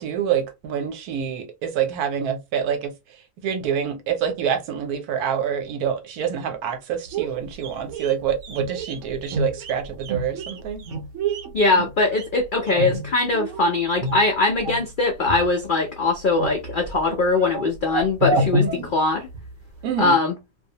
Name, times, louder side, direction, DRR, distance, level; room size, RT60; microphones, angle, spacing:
voice 1, 0.0-2.9 3.4-10.8 18.6-18.9 19.8-20.2, right 8 dB, 80° right, 1.1 m, -26 dB
sound 1, 7.1-13.6 14.0-14.9 15.2-15.9 16.1-19.5 19.8-19.9, right 2 dB, 65° right, 0.9 m, -28 dB
voice 2, 11.5-18.7 18.9-19.3 20.0-20.3, left 3 dB, 75° left, 0.4 m, -21 dB
2.6 x 2.0 x 2.7 m
omnidirectional pair, 1.6 m